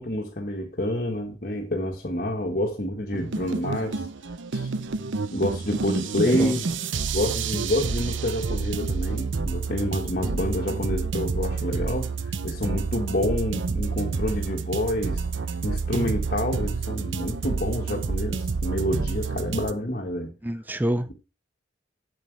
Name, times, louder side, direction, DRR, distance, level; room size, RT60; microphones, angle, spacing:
voice 1, 0.0-4.1 4.5-4.7 5.3-6.7 7.1-15.2 15.6-20.3, left 1 dB, 45° left, 1.5 m, -28 dB
sound 1, 3.1-19.7, right 4 dB, 85° right, 0.7 m, -29 dB
voice 2, 20.4-21.1, right 1 dB, 10° right, 0.4 m, -26 dB
7.7 x 7.7 x 4.7 m
head